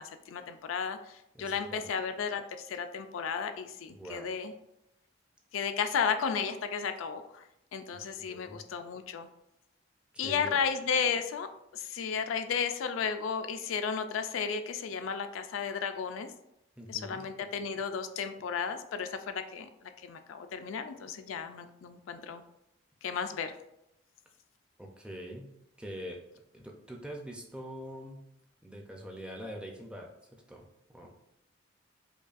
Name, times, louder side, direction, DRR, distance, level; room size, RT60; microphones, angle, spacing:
voice 1, 0.0-4.5 5.5-7.4 7.7-9.3 10.2-11.5 11.7-16.3 16.9-22.4 23.0-23.5, left 6 dB, 85° left, 8 dB, 0.4 m, -33 dB
voice 2, 1.3-1.8 3.9-4.3 7.9-8.6 10.1-10.6 16.8-17.3 24.8-25.5 25.8-26.2 26.5-28.2 28.6-30.1 30.5-31.1, equal, 5° right, 0 dB, 0.4 m, -44 dB
5.1 x 2.2 x 2.4 m, 0.83 s
head